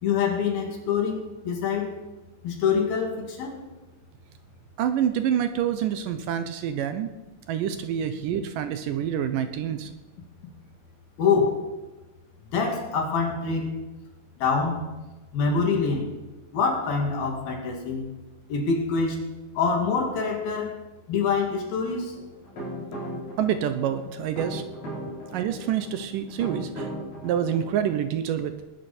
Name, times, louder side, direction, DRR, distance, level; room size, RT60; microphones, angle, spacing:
voice 1, 0.0-1.9 2.4-3.6 11.2-11.7 12.5-13.7 14.4-14.8 15.3-16.1 16.5-18.1 18.5-19.2 19.6-20.8 21.1-22.1, left 5 dB, 75° left, 1 dB, 4.4 m, -25 dB
voice 2, 4.8-7.1 7.5-9.9 23.4-24.6 25.3-26.9 27.2-28.5, right 9 dB, 75° right, 10 dB, 2.2 m, -27 dB
sound 1, 22.1-28.0, right 1 dB, 50° left, 5.5 m, -37 dB
20.0 x 12.0 x 4.4 m, 1.1 s
omnidirectional pair, 4.3 m